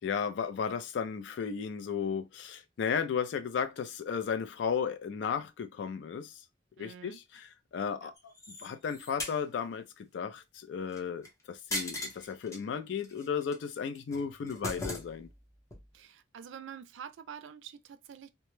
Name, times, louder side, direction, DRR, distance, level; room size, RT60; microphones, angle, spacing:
voice 1, 0.0-6.4 6.8-15.3, left 6 dB, 75° left, 0.3 m, -34 dB
voice 2, 6.8-7.2 8.0-8.1 15.9-18.3, right 8 dB, 90° right, 0.3 m, -47 dB
sound 1, 8.2-9.4 10.9-11.3 11.7-12.6 13.0-13.5 13.9-15.4 15.7-15.8, left 1 dB, 15° left, 0.6 m, -39 dB
2.1 x 2.0 x 3.0 m
head